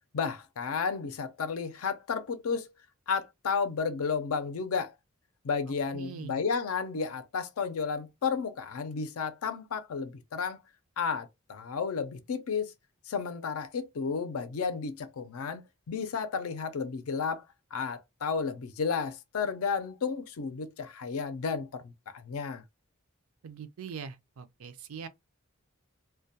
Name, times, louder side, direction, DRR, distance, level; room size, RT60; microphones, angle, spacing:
voice 1, 0.1-2.7 3.1-4.9 5.4-10.6 11.0-12.7 13.1-17.4 17.7-22.6, left 5 dB, 85° left, 0.5 m, -32 dB
voice 2, 5.9-6.4 23.4-25.1, right 6 dB, 75° right, 0.4 m, -42 dB
2.2 x 2.1 x 2.6 m
head